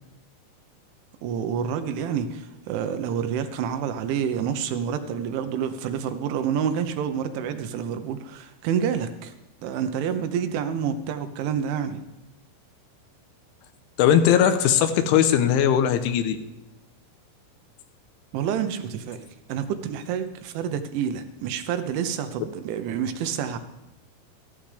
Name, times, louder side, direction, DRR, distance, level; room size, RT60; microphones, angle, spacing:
voice 1, 1.2-9.3 9.6-12.0 18.3-19.2 19.5-23.6, right 8 dB, 80° right, 8 dB, 3.2 m, -28 dB
voice 2, 14.0-16.4, left 9 dB, 80° left, 8 dB, 3.2 m, -19 dB
15.0 x 14.5 x 3.4 m, 0.96 s
omnidirectional pair, 5.6 m